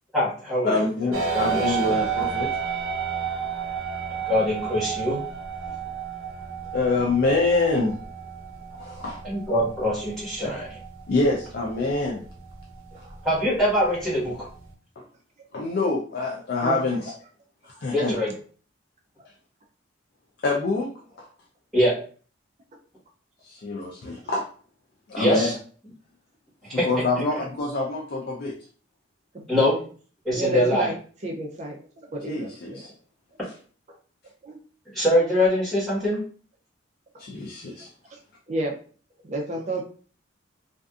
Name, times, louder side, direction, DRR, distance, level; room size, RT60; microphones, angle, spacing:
voice 1, 0.1-0.8 1.1-1.9 4.3-5.2 9.2-10.8 13.2-14.5 17.9-18.3 21.7-21.9 25.1-25.5 26.7-26.9 27.2-27.3 29.5-29.7 30.2-30.9 34.9-36.2, left 1 dB, ahead, -9 dB, 1.2 m, -23 dB
voice 2, 0.6-2.6 6.7-8.0 8.8-9.2 11.1-12.2 15.0-15.1 15.5-17.1 17.6-18.2 20.4-20.9 23.4-24.5 25.1-25.6 26.7-28.6 32.3-32.9 37.2-37.9, left 3 dB, 50° left, -1 dB, 0.4 m, -25 dB
sound 1, 1.1-14.7, right 6 dB, 85° right, 0.6 m, -32 dB
voice 3, 18.0-18.3 29.3-29.8 30.4-30.9 31.2-32.9 34.4-34.6 38.5-38.7 39.2-39.8, right 2 dB, 35° right, 1 dB, 0.4 m, -31 dB
2.4 x 2.4 x 2.3 m, 0.42 s
head